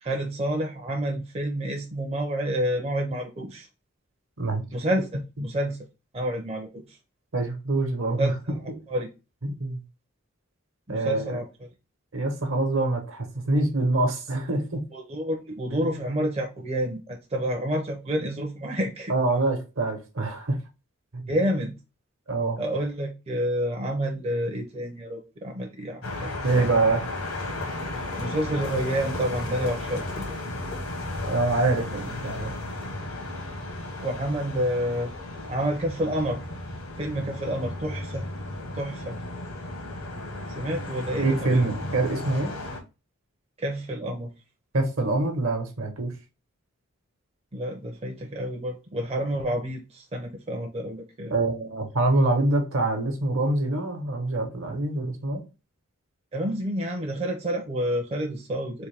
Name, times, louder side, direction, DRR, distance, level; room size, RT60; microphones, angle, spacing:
voice 1, 0.0-3.7 4.7-5.8 6.1-7.0 8.2-8.3 8.9-9.1 10.9-11.5 14.9-19.1 21.3-21.7 22.6-26.7 28.2-30.3 34.0-35.1 35.5-36.4 37.0-38.3 38.7-39.2 40.5-41.7 43.6-44.3 47.5-51.3 56.3-58.9, equal, 30° right, 0.5 m, -29 dB
voice 2, 7.3-8.6 9.4-9.8 10.9-11.4 12.1-14.9 15.8-15.9 19.1-20.6 21.1-21.2 22.3-22.6 26.4-27.0 31.3-32.5 41.2-42.5 44.7-46.1 51.3-55.4, right 2 dB, 70° right, 1.0 m, -25 dB
sound 1, 26.0-42.8, left 2 dB, 80° left, 1.2 m, -34 dB
3.7 x 2.6 x 3.3 m
head